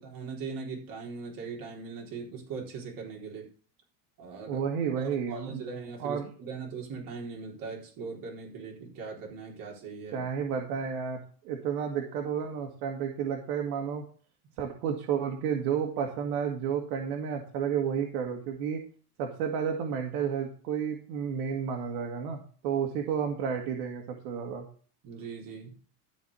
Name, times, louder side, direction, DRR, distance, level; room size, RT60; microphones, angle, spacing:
voice 1, 0.0-3.5 4.2-4.7 5.0-10.2 25.0-25.8, right 5 dB, 45° right, -1 dB, 4.3 m, -40 dB
voice 2, 4.5-5.6 6.0-6.3 10.1-14.0 14.6-18.8 19.2-24.6, right 7 dB, 80° right, 1 dB, 2.0 m, -31 dB
13.0 x 4.5 x 6.9 m, 0.42 s
supercardioid pair, 125°, 48 cm